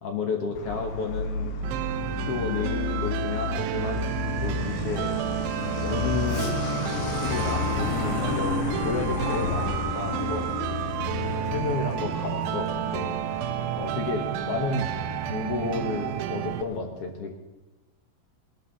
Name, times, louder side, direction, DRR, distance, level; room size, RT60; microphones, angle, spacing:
voice 1, 0.0-1.6 2.2-4.0 4.4-5.2 5.8-6.5 7.1-10.7 11.2-14.9 15.2-17.3, left 4 dB, 55° left, 3 dB, 1.9 m, -32 dB
Truck, 0.6-16.8, left 5 dB, 75° left, 2.9 m, -32 dB
sound 1, 1.6-16.6, right 13 dB, 85° right, 2.4 m, -31 dB
19.0 x 12.5 x 4.1 m, 1.1 s
omnidirectional pair, 3.9 m